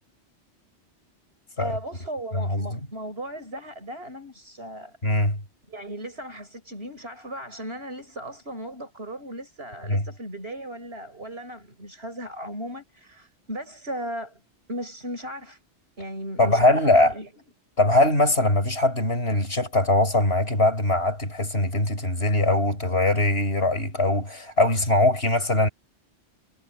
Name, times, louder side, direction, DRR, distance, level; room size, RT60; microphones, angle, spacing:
voice 1, 1.6-5.0 5.7-14.4 14.7-15.6 16.0-17.3, right 1 dB, 60° right, 7.0 m, -36 dB
voice 2, 2.3-2.9 5.0-5.4 9.9-10.0 16.4-17.1 17.8-25.7, left 2 dB, 60° left, 6.7 m, -21 dB
omnidirectional pair, 1.2 m